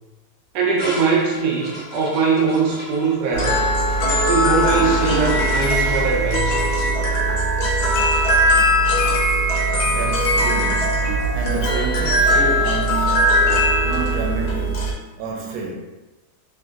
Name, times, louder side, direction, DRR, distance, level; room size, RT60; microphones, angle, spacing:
voice 1, 0.5-3.6 4.3-6.9, right 5 dB, 70° right, -2 dB, 1.1 m, -21 dB
sound 1, 0.8-9.0, equal, 45° right, 1.1 m, -34 dB
sound 2, 3.3-14.9, equal, 60° left, 1.1 m, -19 dB
voice 2, 9.9-15.7, right 3 dB, 90° right, -1 dB, 1.4 m, -30 dB
3.3 x 2.7 x 2.4 m, 1.1 s
omnidirectional pair, 2.2 m